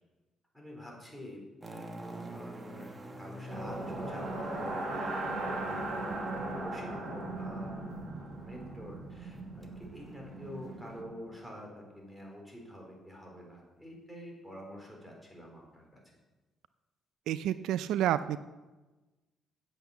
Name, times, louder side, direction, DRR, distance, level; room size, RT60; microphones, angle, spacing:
voice 1, 0.5-6.1 6.6-7.7 8.4-16.0, equal, 5° right, -1 dB, 3.9 m, -48 dB
sound 1, 1.6-11.0, right 1 dB, 25° right, 1.4 m, -48 dB
sound 2, 3.4-11.5, right 2 dB, 55° right, 3.3 m, -38 dB
voice 2, 17.3-18.4, right 11 dB, 85° right, 14 dB, 0.3 m, -29 dB
8.8 x 8.1 x 7.2 m, 1.1 s
cardioid pair, 90°, 0 cm